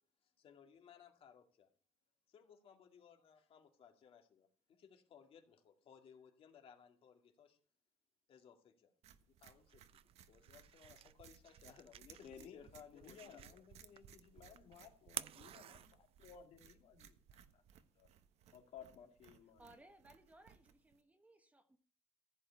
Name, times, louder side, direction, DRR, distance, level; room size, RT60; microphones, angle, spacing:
voice 1, 0.2-1.7 2.3-7.6 8.3-8.9 9.2-13.6, left 7 dB, 60° left, 2.2 m, -62 dB
sound 1, 9.0-21.0, right 8 dB, 80° right, 1.3 m, -63 dB
sound 2, 9.5-16.4, right 11 dB, 60° right, 0.5 m, -53 dB
voice 2, 12.2-17.6 18.0-18.1 18.5-19.6, left 7 dB, 80° left, 2.4 m, -58 dB
voice 3, 19.6-21.8, right 1 dB, 15° right, 1.4 m, -63 dB
15.0 x 5.5 x 8.3 m
cardioid pair, 135°, 11 cm